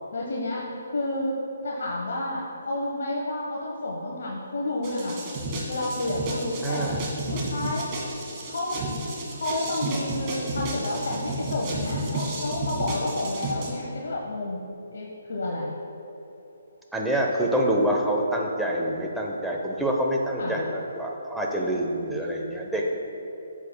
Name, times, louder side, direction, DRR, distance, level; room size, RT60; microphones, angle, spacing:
voice 1, 0.1-5.2 5.7-7.0 7.3-7.9 8.5-8.8 9.3-15.8 20.4-20.6 21.6-22.0, left 2 dB, 65° left, -3 dB, 1.1 m, -30 dB
sound 1, 4.8-13.7, right 1 dB, 30° right, 1.7 m, -32 dB
voice 2, 6.6-7.0 16.9-22.9, right 1 dB, ahead, -2 dB, 0.9 m, -26 dB
13.5 x 7.1 x 2.2 m, 3.0 s
figure-of-eight pair, 145°, 0 cm